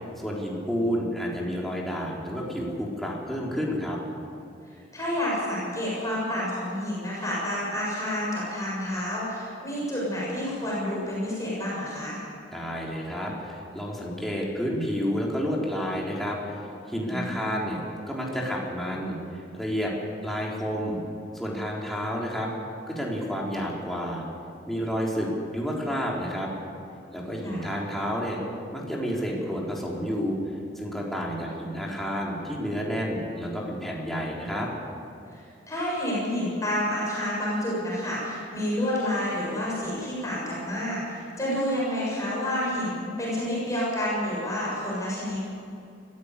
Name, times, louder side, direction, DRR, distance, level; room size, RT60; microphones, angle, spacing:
voice 1, 0.2-4.0 12.5-17.8 18.1-19.9 20.2-21.0 21.3-22.5 22.9-24.2 24.7-26.5 27.1-28.4 28.7-30.4 30.8-34.7, equal, ahead, -4 dB, 3.9 m, -30 dB
voice 2, 4.9-12.2 17.1-17.5 27.4-27.8 35.3-45.5, left 1 dB, 20° left, -6 dB, 7.1 m, -29 dB
22.0 x 15.0 x 8.3 m, 2.5 s
head